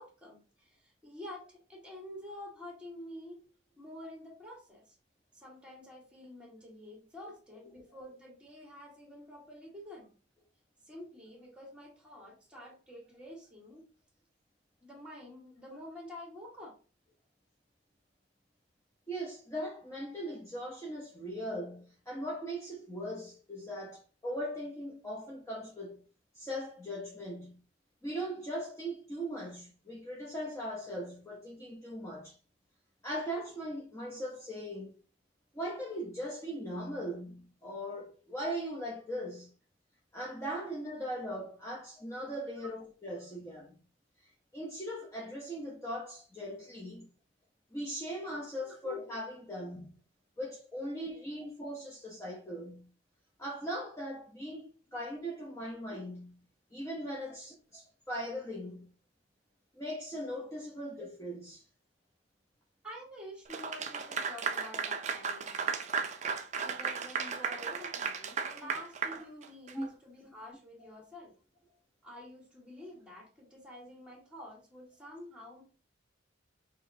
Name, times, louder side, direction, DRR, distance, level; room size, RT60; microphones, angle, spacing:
voice 1, 0.0-3.4 3.8-5.0 5.3-10.1 10.8-13.9 14.8-16.7 42.6-42.7 48.6-48.8 62.8-66.1 66.6-71.4 72.0-75.6, left 1 dB, 5° right, 1.8 m, -48 dB
voice 2, 19.1-26.0 26.3-27.6 28.0-32.4 33.0-34.9 35.5-39.5 40.1-43.8 44.2-47.1 47.7-50.0 50.4-52.9 53.4-56.4 56.7-58.9 59.7-61.7 69.7-69.9, equal, 15° left, 0.8 m, -39 dB
Clapping / Applause, 63.5-69.8, right 6 dB, 35° right, 0.5 m, -35 dB
6.1 x 3.2 x 2.7 m
head